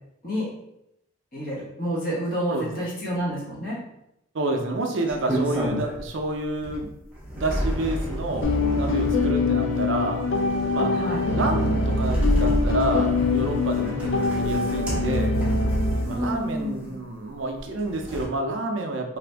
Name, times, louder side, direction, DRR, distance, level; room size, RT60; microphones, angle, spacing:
voice 1, 1.3-3.8 10.9-11.3 16.1-16.9, equal, 45° left, -7 dB, 1.2 m, -29 dB
voice 2, 4.3-6.9 7.4-10.2 10.7-10.9 11.3-15.3 16.0-19.2, right 2 dB, 65° right, 3 dB, 0.5 m, -29 dB
sound 1, 5.1-6.2 6.6-16.9 17.6-18.3, equal, 5° right, 0.6 m, -30 dB
sound 2, 8.4-16.0, left 3 dB, 65° left, 0.5 m, -24 dB
2.7 x 2.5 x 3.3 m, 0.82 s
head